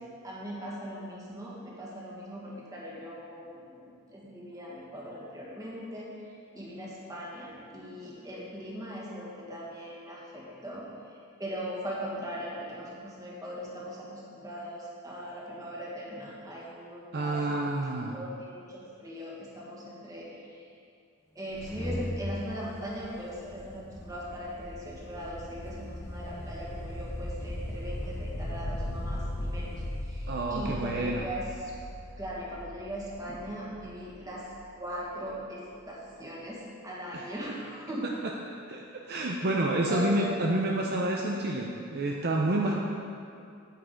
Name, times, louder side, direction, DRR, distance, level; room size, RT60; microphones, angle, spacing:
voice 1, 0.2-20.7 21.3-31.7 32.2-34.4 34.7-38.1 39.9-40.4 42.6-42.7, equal, 15° right, -5 dB, 1.8 m, -40 dB
voice 2, 17.1-18.2 30.3-31.3 37.1-37.2 38.7-42.7, right 1 dB, 50° right, 0 dB, 0.6 m, -29 dB
sound 1, 21.3-31.8, equal, 10° left, 0.6 m, -44 dB
sound 2, 22.9-35.3, left 1 dB, 40° left, 0.9 m, -39 dB
9.3 x 8.5 x 3.9 m, 2.4 s
head